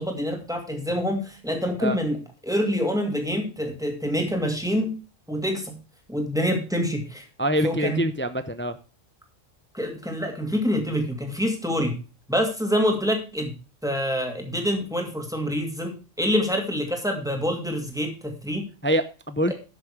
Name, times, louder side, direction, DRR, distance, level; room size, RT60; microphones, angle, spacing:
voice 1, 0.0-4.9 5.3-5.8 6.1-7.3 7.6-8.0 9.7-12.0 12.3-13.5 13.8-18.7 19.5-19.6, equal, 5° right, 3 dB, 2.6 m, -26 dB
voice 2, 7.4-8.8 18.8-19.5, equal, 15° left, 11 dB, 0.5 m, -25 dB
12.0 x 6.8 x 4.9 m, 0.32 s
omnidirectional pair, 1.2 m